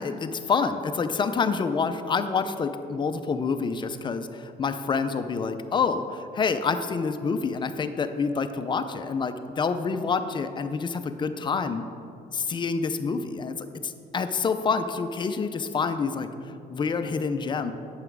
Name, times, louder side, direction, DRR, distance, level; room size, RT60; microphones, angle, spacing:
voice 1, 0.0-11.8 12.3-13.6 13.8-17.7, left 5 dB, 30° left, 9 dB, 0.5 m, -27 dB
7.9 x 5.7 x 4.7 m, 2.5 s
cardioid pair, 110°, 17 cm